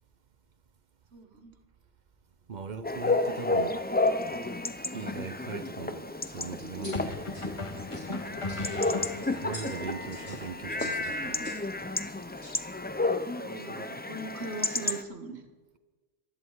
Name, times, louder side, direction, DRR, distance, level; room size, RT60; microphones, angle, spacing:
voice 1, 1.1-1.5 8.6-8.9 13.3-15.4, right 2 dB, 85° right, 1.7 m, -40 dB
voice 2, 2.5-3.8 4.9-7.3 9.4-11.6, right 5 dB, 50° right, 0.8 m, -40 dB
Chatter / Bark / Livestock farm animals working animals, 2.8-15.0, left 2 dB, 15° left, 0.3 m, -31 dB
sound 1, 4.3-4.5 6.9-9.6, left 2 dB, 30° left, 1.0 m, -37 dB
sound 2, 6.1-13.0, equal, 75° left, 5.6 m, -50 dB
19.0 x 13.0 x 4.7 m
omnidirectional pair, 1.1 m